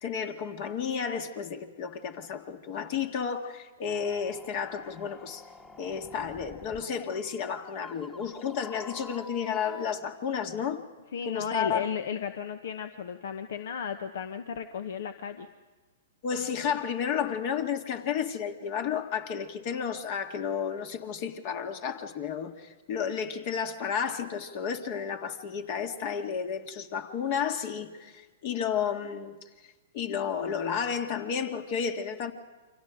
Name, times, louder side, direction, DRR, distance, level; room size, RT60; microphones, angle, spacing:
voice 1, 0.0-5.4 5.8-10.8 11.2-11.9 16.2-29.4 29.9-32.3, left 7 dB, 50° left, 2.0 m, -32 dB
sound 1, 3.8-9.9, left 2 dB, 15° left, 1.6 m, -48 dB
voice 2, 11.1-15.5, left 7 dB, 70° left, 1.1 m, -34 dB
29.0 x 25.5 x 5.1 m
hypercardioid pair, 125°, 0 cm